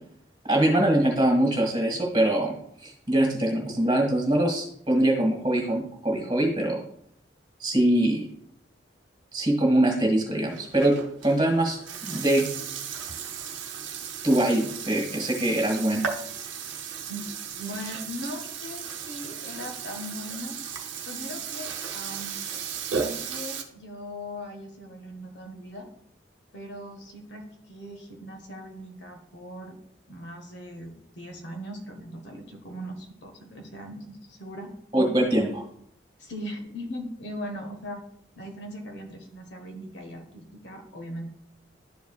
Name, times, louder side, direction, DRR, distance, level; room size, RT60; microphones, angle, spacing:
voice 1, 0.4-2.5 2.8-6.8 7.6-8.2 9.3-10.9 11.2-12.5 14.2-16.0 34.9-35.6, right 1 dB, 25° right, 0 dB, 1.6 m, -23 dB
Burping eructation, 10.5-23.6, right 6 dB, 80° right, 0.9 m, -35 dB
voice 2, 17.1-20.6 21.1-22.4 22.9-25.9 26.5-29.8 30.1-34.7 36.2-38.0 38.4-41.3, equal, 70° left, 4 dB, 1.2 m, -39 dB
11.5 x 4.7 x 2.3 m, 0.68 s
head